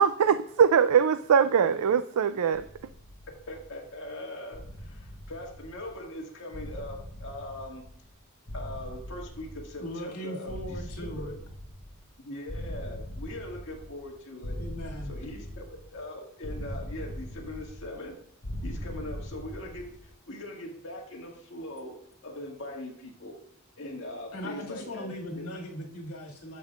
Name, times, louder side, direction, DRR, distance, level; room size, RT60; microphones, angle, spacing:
voice 1, 0.0-2.6, right 7 dB, 85° right, 11 dB, 0.4 m, -22 dB
sound 1, 2.5-3.9 4.5-6.1 6.5-8.1 8.5-10.1 10.5-12.1 12.5-14.1 14.4-16.0 16.4-18.1 18.4-20.1, equal, 40° left, 1.1 m, -40 dB
voice 2, 3.5-7.8 8.5-11.3 12.2-14.6 15.1-18.2 18.6-22.0 22.2-23.4 23.8-25.4, left 1 dB, 60° left, -1 dB, 1.9 m, -41 dB
voice 3, 9.8-11.4 14.6-15.1 24.3-26.6, equal, 85° left, -1 dB, 2.1 m, -39 dB
15.5 x 5.4 x 2.4 m, 0.67 s
head